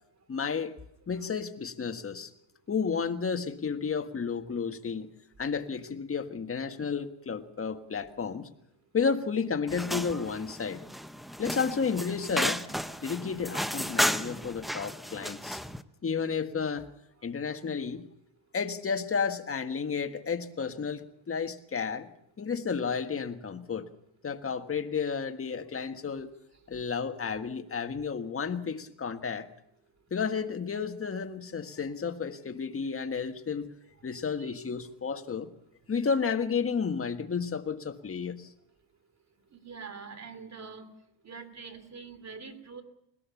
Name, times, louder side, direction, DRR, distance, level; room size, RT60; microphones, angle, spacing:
voice 1, 0.3-0.8 1.1-2.3 2.7-5.1 5.4-8.5 8.9-10.8 11.4-12.6 13.0-15.6 16.0-16.9 17.2-18.0 18.5-22.1 22.4-23.9 24.2-26.3 26.7-29.5 30.1-33.7 34.0-35.5 35.9-38.5, left 6 dB, 25° left, 7 dB, 1.6 m, -32 dB
sound 1, 9.7-15.8, equal, ahead, 0.7 m, -33 dB
voice 2, 39.5-40.9 41.2-42.8, right 5 dB, 35° right, 11 dB, 2.8 m, -44 dB
21.0 x 18.0 x 7.1 m, 0.75 s
cardioid pair, 110°, 48 cm